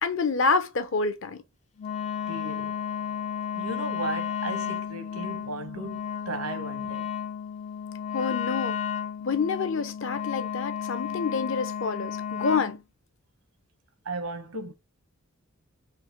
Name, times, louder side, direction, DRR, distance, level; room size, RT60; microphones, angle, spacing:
voice 1, 0.0-1.4 8.1-8.8 9.2-12.8, left 4 dB, 60° left, 0.7 m, -27 dB
Wind instrument woodwind instrument, 1.8-12.8, left 8 dB, 30° left, 0.3 m, -33 dB
voice 2, 2.3-2.8 3.6-7.1 14.0-14.7, right 2 dB, 80° right, 1.1 m, -35 dB
4.0 x 2.8 x 3.1 m
head